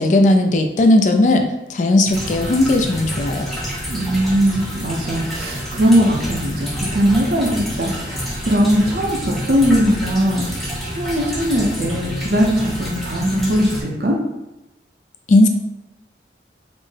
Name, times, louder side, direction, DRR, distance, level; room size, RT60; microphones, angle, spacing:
voice 1, 0.0-3.5 15.3-15.5, left 1 dB, 45° left, 5 dB, 0.3 m, -16 dB
sound 1, 2.1-13.8, equal, ahead, 0.6 m, -28 dB
voice 2, 3.9-14.2, equal, 55° right, -1 dB, 0.6 m, -19 dB
4.2 x 2.0 x 3.2 m, 0.94 s
head